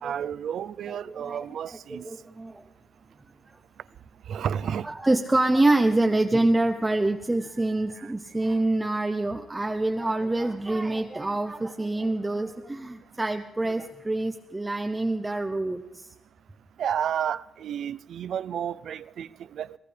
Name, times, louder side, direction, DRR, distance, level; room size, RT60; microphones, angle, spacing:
voice 1, 0.0-2.0 4.3-4.9 8.0-8.1 16.8-19.8, right 9 dB, 65° right, 0.5 m, -31 dB
voice 2, 0.9-2.6 4.8-16.1, right 2 dB, 10° right, 0.6 m, -26 dB
24.0 x 18.0 x 3.3 m
cardioid pair, 150°, 0 cm